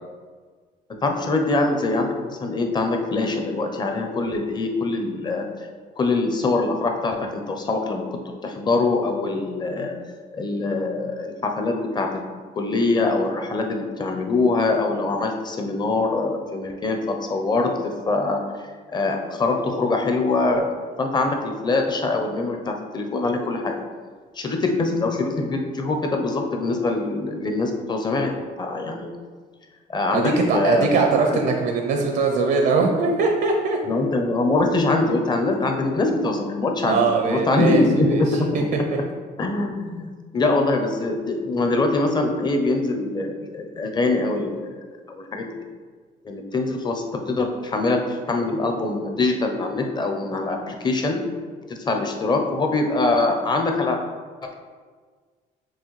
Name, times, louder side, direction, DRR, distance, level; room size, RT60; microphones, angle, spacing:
voice 1, 1.0-5.5 6.0-9.9 10.3-12.2 12.5-18.4 18.9-20.6 21.0-23.7 24.4-29.1 29.9-30.9 33.8-38.5 39.4-45.5 46.2-51.2 51.7-54.0, left 3 dB, 25° left, 3 dB, 0.6 m, -23 dB
voice 2, 30.1-33.8 36.8-39.0, right 4 dB, 70° right, 2 dB, 0.6 m, -21 dB
6.1 x 2.2 x 3.1 m, 1.5 s
cardioid pair, 110°, 17 cm